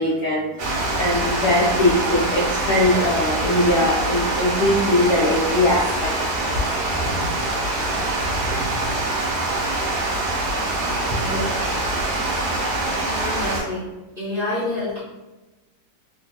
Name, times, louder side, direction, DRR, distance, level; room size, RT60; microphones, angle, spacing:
voice 1, 0.0-6.1, left 1 dB, 70° left, -5 dB, 0.9 m, -21 dB
Water, 0.6-13.6, right 2 dB, 65° right, 1.2 m, -24 dB
voice 2, 11.2-11.7 12.6-13.9 14.2-15.0, left 2 dB, 55° left, -10 dB, 0.6 m, -29 dB
3.2 x 2.2 x 2.7 m, 1.1 s
omnidirectional pair, 2.0 m